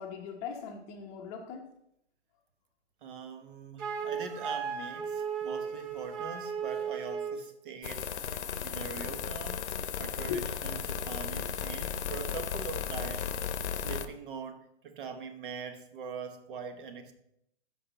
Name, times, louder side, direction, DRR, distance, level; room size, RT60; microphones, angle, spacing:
voice 1, 0.0-1.7 10.3-10.4 11.3-11.5, left 7 dB, 20° left, 0.8 m, -39 dB
voice 2, 3.0-9.7 10.0-13.3 13.7-17.1, right 6 dB, 50° right, 1.2 m, -42 dB
Wind instrument woodwind instrument, 3.8-7.5, right 6 dB, 20° right, 0.8 m, -35 dB
sound 1, 7.8-14.1, left 8 dB, 75° left, 1.0 m, -35 dB
13.5 x 5.7 x 4.1 m
hypercardioid pair, 155°, 35 cm